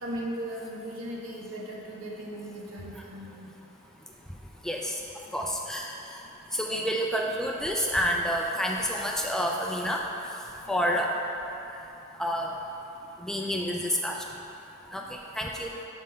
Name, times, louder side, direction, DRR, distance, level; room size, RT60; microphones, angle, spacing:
voice 1, 0.0-3.5 10.1-10.2 10.8-11.0 15.7-15.8, right 1 dB, 85° right, -3 dB, 1.2 m, -37 dB
voice 2, 4.6-5.0 5.3-6.2 6.5-11.1 12.2-12.5 13.2-14.3 14.9-15.7, equal, ahead, -1 dB, 0.3 m, -29 dB
5.7 x 5.1 x 5.4 m, 3.0 s
head